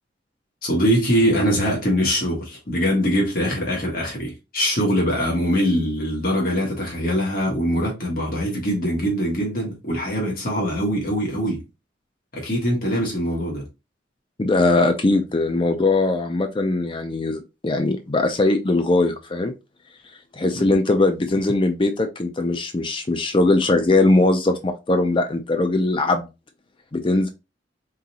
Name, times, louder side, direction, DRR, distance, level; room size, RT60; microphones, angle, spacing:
voice 1, 0.6-11.6 12.3-13.6 20.5-20.7, equal, 50° left, 1.6 m, -22 dB
voice 2, 14.4-19.5 20.3-26.2 26.9-27.3, left 2 dB, 30° left, 0.4 m, -20 dB
3.9 x 3.8 x 2.8 m
head